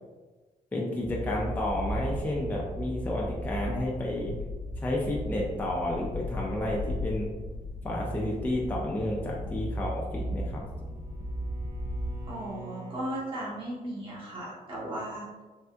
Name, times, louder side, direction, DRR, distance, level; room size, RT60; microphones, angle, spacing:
voice 1, 0.7-4.3 4.8-7.3 7.8-10.7, left 1 dB, 10° left, -3 dB, 0.3 m, -31 dB
sound 1, 1.0-12.6, equal, 60° left, 0.6 m, -36 dB
Bowed string instrument, 10.0-13.2, right 3 dB, 85° right, 0.5 m, -48 dB
voice 2, 12.3-15.4, right 1 dB, 35° right, -8 dB, 1.0 m, -36 dB
3.3 x 2.7 x 2.2 m, 1.3 s
wide cardioid pair, 150°, 15 cm